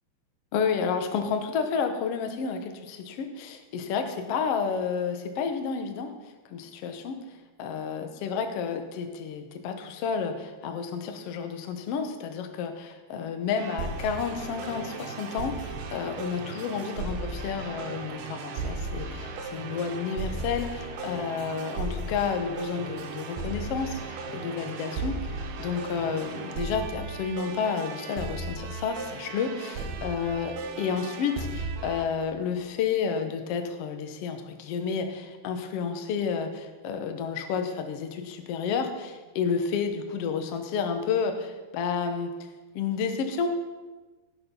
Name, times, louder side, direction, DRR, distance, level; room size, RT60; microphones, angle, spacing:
voice 1, 0.5-6.1 6.5-7.2 7.6-42.3 42.7-43.5, left 6 dB, 85° left, 6 dB, 1.3 m, -31 dB
sound 1, 13.6-32.1, right 3 dB, 80° right, 3.0 m, -36 dB
17.0 x 6.7 x 5.5 m, 1.2 s
omnidirectional pair, 4.4 m